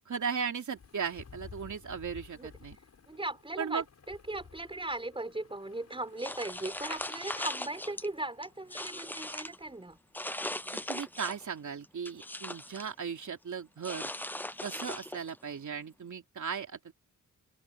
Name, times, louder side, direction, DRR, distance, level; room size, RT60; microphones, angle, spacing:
voice 1, 0.0-2.8 3.6-3.8 10.7-14.1 14.6-16.9, right 6 dB, 60° right, 3.1 m, -37 dB
sound 1, 0.7-11.2, left 5 dB, 50° left, 5.7 m, -55 dB
voice 2, 3.1-10.0, right 2 dB, 15° right, 4.8 m, -38 dB
sound 2, 6.2-8.1 8.4-9.6 10.1-11.5 11.8-12.9 13.8-15.4, left 1 dB, 5° left, 0.5 m, -39 dB
open air
wide cardioid pair, 160°, 33 cm